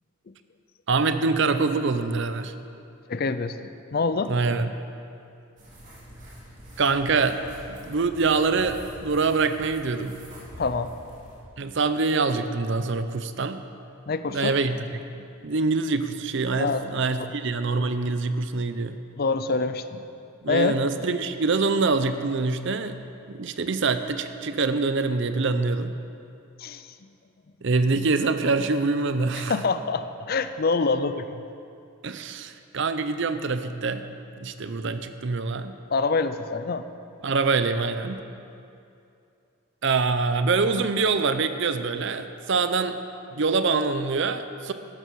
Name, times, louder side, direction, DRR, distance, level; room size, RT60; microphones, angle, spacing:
voice 1, 0.9-2.5 4.3-4.7 6.8-7.4 7.7-10.2 11.6-13.6 14.3-14.8 15.4-19.0 20.4-23.0 23.3-25.9 27.6-29.6 32.0-34.1 34.4-35.8 37.2-38.2 39.8-43.0 43.3-44.7, right 4 dB, 55° right, 10 dB, 0.6 m, -25 dB
voice 2, 3.1-4.3 10.6-10.9 14.1-14.6 16.6-17.3 19.2-20.0 20.5-20.8 26.6-27.0 29.3-31.4 35.9-36.9, left 4 dB, 45° left, 11 dB, 0.5 m, -26 dB
sound 1, 5.6-11.4, equal, 35° right, 3.1 m, -45 dB
12.5 x 12.0 x 4.7 m, 2.6 s
head